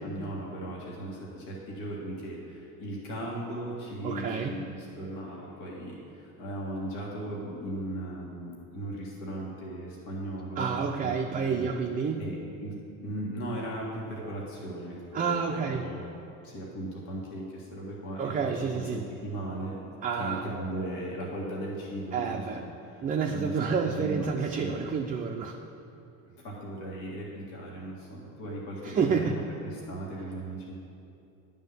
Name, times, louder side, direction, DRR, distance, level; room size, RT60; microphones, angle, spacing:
voice 1, 0.0-11.7 12.1-12.8 13.0-16.0 16.4-19.8 20.2-22.6 22.9-23.0 23.3-24.7 26.2-29.4 29.7-30.7, right 1 dB, 75° left, -4 dB, 1.8 m, -37 dB
voice 2, 4.0-4.6 10.6-12.3 15.1-15.8 18.2-19.1 20.0-20.5 22.1-22.6 23.0-25.6 28.8-29.4, right 6 dB, 20° right, 2 dB, 0.4 m, -29 dB
9.7 x 3.7 x 6.7 m, 2.7 s
hypercardioid pair, 80°, 43 cm